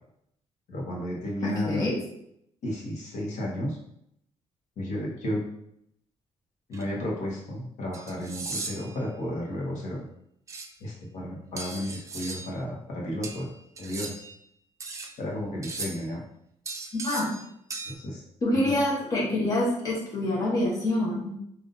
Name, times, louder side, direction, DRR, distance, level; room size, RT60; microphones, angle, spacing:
voice 1, 0.7-1.8 2.6-3.8 4.8-5.4 6.7-10.0 10.8-13.5 13.8-14.1 15.2-16.2 17.9-18.2 18.6-18.7, left 1 dB, 75° left, -3 dB, 1.2 m, -33 dB
voice 2, 1.4-2.0 16.9-17.3 18.4-21.3, left 1 dB, 30° left, -4 dB, 1.0 m, -26 dB
sound 1, 6.7-6.8 7.9-9.0 10.5-10.7 11.6-12.5 13.2-14.4 14.8-15.1 15.6-16.1 16.7-17.4 17.7-17.9, right 3 dB, 25° right, 0.4 m, -37 dB
5.3 x 2.6 x 2.6 m, 0.75 s
cardioid pair, 165°, 12 cm